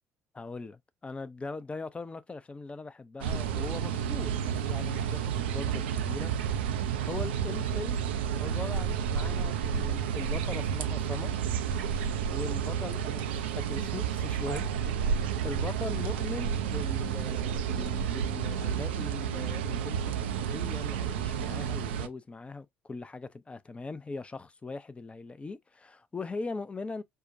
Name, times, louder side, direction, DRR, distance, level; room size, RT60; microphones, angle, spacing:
voice 1, 0.3-6.3 7.0-8.0 8.3-11.4 12.3-27.0, left 3 dB, 20° left, 0.5 m, -40 dB
sound 1, 3.2-22.1, right 8 dB, 75° right, 0.4 m, -31 dB
5.5 x 2.2 x 2.5 m
figure-of-eight pair, 50°, 6 cm